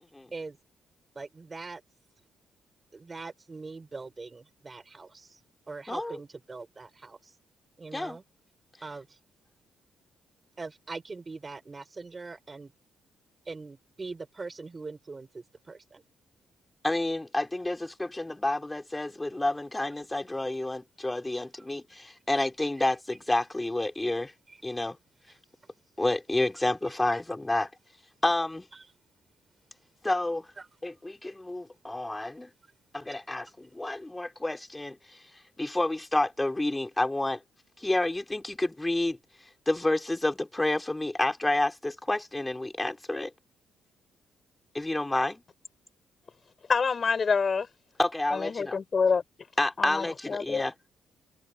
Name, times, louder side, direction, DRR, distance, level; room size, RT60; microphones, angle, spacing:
voice 1, 1.2-1.8 2.9-5.4 5.7-7.3 7.8-8.2 8.8-9.2 10.6-12.7 13.5-16.0 24.5-24.6 28.7-28.9 30.6-30.7, right 3 dB, 25° right, 7.2 m, -42 dB
voice 2, 5.9-6.2 7.9-8.2 16.8-24.3 24.6-25.0 26.0-27.7 28.2-28.7 30.0-30.5 30.8-32.5 32.9-35.0 35.6-37.4 37.8-39.2 39.7-43.3 44.7-45.4 48.0-48.8 49.6-50.9, left 2 dB, 15° left, 4.3 m, -29 dB
voice 3, 46.7-47.7 48.3-49.2 49.8-50.6, left 5 dB, 40° left, 7.0 m, -26 dB
cardioid pair, 90°, 0 cm